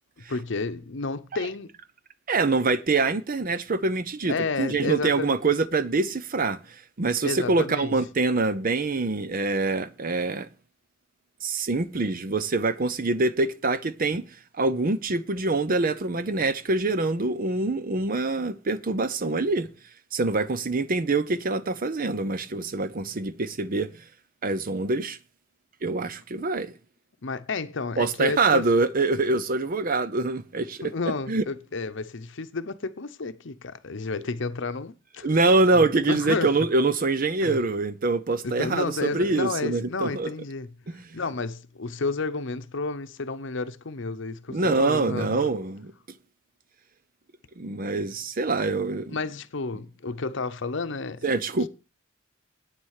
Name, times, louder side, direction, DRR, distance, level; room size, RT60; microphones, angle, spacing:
voice 1, 0.3-1.7 4.3-5.3 7.2-8.0 27.2-28.7 30.8-35.3 35.7-36.5 37.4-37.6 38.4-40.7 41.1-45.5 49.1-51.2, left 4 dB, 65° left, 0.8 m, -31 dB
voice 2, 2.3-10.5 11.4-14.2 14.6-19.7 20.1-23.9 24.4-25.2 25.8-26.7 28.0-30.8 31.3-31.4 35.2-40.3 40.9-41.1 44.5-45.9 47.6-49.2 51.2-51.7, right 3 dB, 45° right, 0.7 m, -25 dB
9.0 x 7.4 x 6.5 m
head